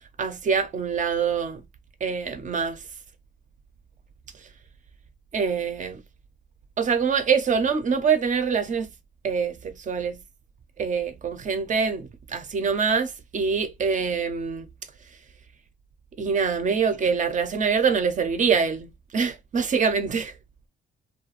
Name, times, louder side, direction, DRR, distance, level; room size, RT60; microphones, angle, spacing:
voice 1, 0.2-1.6 2.0-2.8 5.3-6.0 6.8-8.9 9.2-10.2 10.8-14.7 16.2-20.3, right 6 dB, 40° right, 0.4 m, -25 dB
2.4 x 2.2 x 3.0 m
cardioid pair, 90°, 20 cm